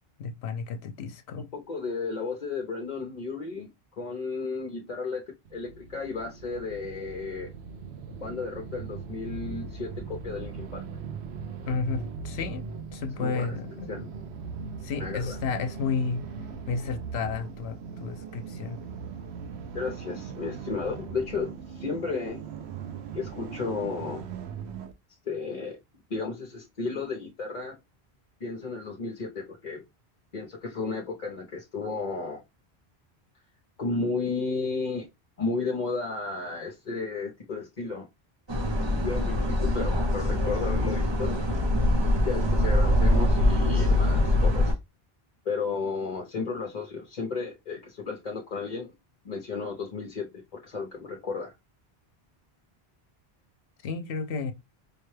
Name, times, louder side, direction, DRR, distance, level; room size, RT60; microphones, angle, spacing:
voice 1, 0.2-1.5 11.7-12.6 12.9-13.9 14.8-16.2 16.7-18.8 53.8-54.5, left 5 dB, 85° left, 0.9 m, -32 dB
voice 2, 1.5-5.2 5.5-7.5 8.2-10.8 13.2-13.5 13.9-14.1 15.0-15.4 19.7-22.4 23.1-24.2 25.2-25.8 26.1-27.8 28.4-29.8 30.3-32.4 33.8-35.1 35.4-38.1 39.0-41.4 42.2-44.8 45.4-48.9 49.2-51.5, left 4 dB, 50° left, 0.8 m, -33 dB
sound 1, 5.4-24.9, right 5 dB, 85° right, 0.9 m, -39 dB
sound 2, 38.5-44.7, left 1 dB, 30° right, 0.6 m, -23 dB
5.0 x 2.2 x 3.2 m
omnidirectional pair, 1.1 m